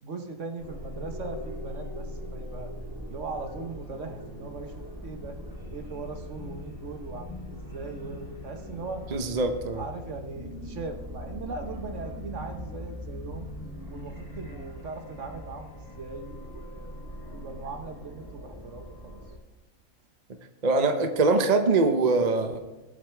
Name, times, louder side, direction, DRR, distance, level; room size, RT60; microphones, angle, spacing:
voice 1, 0.0-2.7 3.1-5.4 5.7-9.0 9.7-13.5 13.9-17.0 17.3-19.2, right 3 dB, 60° right, 5 dB, 1.4 m, -39 dB
sound 1, 0.6-19.4, left 1 dB, 15° right, 3.3 m, -41 dB
voice 2, 9.1-9.8 20.6-22.6, right 3 dB, 35° right, 6 dB, 0.7 m, -23 dB
19.5 x 7.5 x 3.4 m, 1.1 s
omnidirectional pair, 1.5 m